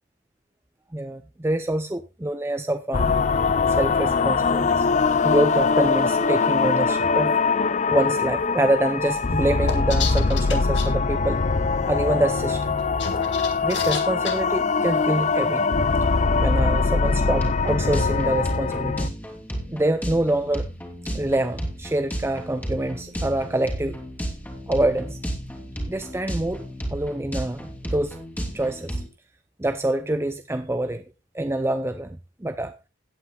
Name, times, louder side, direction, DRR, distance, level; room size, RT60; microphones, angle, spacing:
voice 1, 0.9-3.2 3.7-4.9 5.2-7.4 7.9-11.4 11.9-12.8 13.6-15.7 16.4-19.1 19.7-20.7 21.0-24.0 24.7-25.2 25.9-26.6 26.9-28.2 28.5-29.0 29.6-31.0 31.3-32.8, right 1 dB, 15° right, 0.6 m, -26 dB
sound 1, 2.9-19.1, left 4 dB, 40° left, 0.5 m, -22 dB
sound 2, 9.7-10.9 12.8-14.3, left 5 dB, 65° left, 1.9 m, -30 dB
sound 3, 17.1-29.1, equal, 10° left, 2.5 m, -33 dB
17.0 x 8.7 x 2.3 m
head